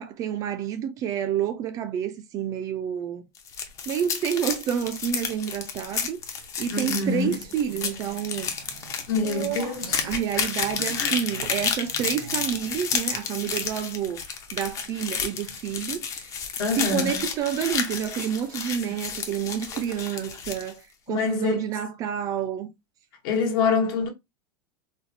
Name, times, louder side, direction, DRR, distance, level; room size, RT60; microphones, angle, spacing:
voice 1, 0.0-3.2 3.9-6.2 6.6-8.5 9.6-9.8 10.0-14.2 14.5-16.3 16.8-22.7, right 9 dB, 25° right, 0.3 m, -29 dB
sound 1, 3.3-20.7, left 6 dB, 25° left, 0.5 m, -31 dB
sound 2, 5.5-14.5, right 6 dB, 90° right, 1.0 m, -48 dB
sound 3, 6.5-20.1, right 9 dB, 70° right, 0.6 m, -44 dB
voice 2, 6.7-7.4 9.1-10.1 10.3-10.5 10.8-11.2 16.6-17.2 18.8-18.9 21.1-21.6 23.2-24.1, left 4 dB, 60° left, 1.2 m, -26 dB
4.1 x 2.2 x 2.6 m
supercardioid pair, 155°, 13 cm